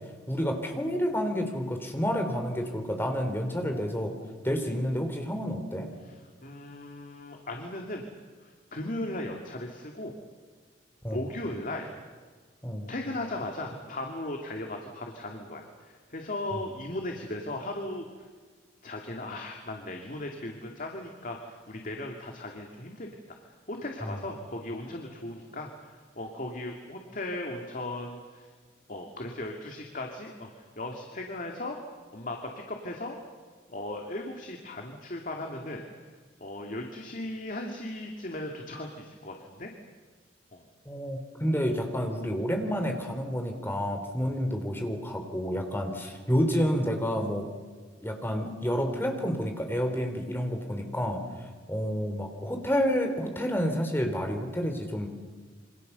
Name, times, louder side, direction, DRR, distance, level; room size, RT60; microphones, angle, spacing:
voice 1, 0.3-4.1 4.4-5.9 11.0-11.3 12.6-12.9 16.5-16.6 24.0-24.2 40.9-47.4 48.0-55.1, equal, 10° left, 4 dB, 3.6 m, -29 dB
voice 2, 6.0-8.0 8.4-10.1 11.1-11.9 12.9-18.1 18.8-23.1 23.4-28.5 28.9-31.8 32.1-33.2 33.7-36.1 36.4-39.7 40.5-40.6, left 1 dB, 45° left, 2 dB, 2.5 m, -37 dB
27.5 x 25.5 x 6.9 m, 1.5 s
head